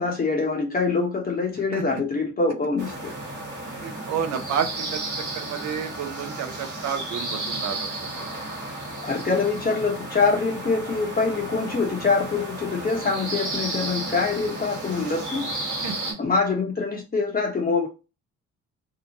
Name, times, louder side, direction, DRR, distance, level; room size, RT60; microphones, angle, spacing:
voice 1, 0.0-3.1 9.0-15.5 16.2-17.9, left 4 dB, 30° left, 0.8 m, -24 dB
sound 1, 2.8-16.1, right 2 dB, 35° right, 1.4 m, -33 dB
voice 2, 3.8-5.0 5.3-8.3 15.8-16.0, right 7 dB, 65° right, 0.6 m, -30 dB
2.8 x 2.1 x 2.8 m
cardioid pair, 90°, 30 cm